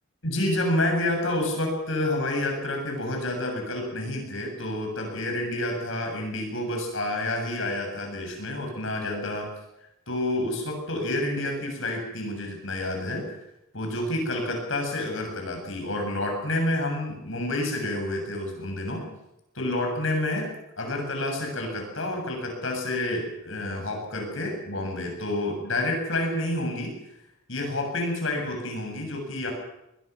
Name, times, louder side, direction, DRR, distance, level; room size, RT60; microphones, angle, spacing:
voice 1, 0.2-9.5 10.1-13.3 13.7-19.1 19.5-26.9 27.5-29.5, left 1 dB, 65° left, 2 dB, 7.3 m, -29 dB
21.5 x 21.5 x 6.1 m, 0.86 s
head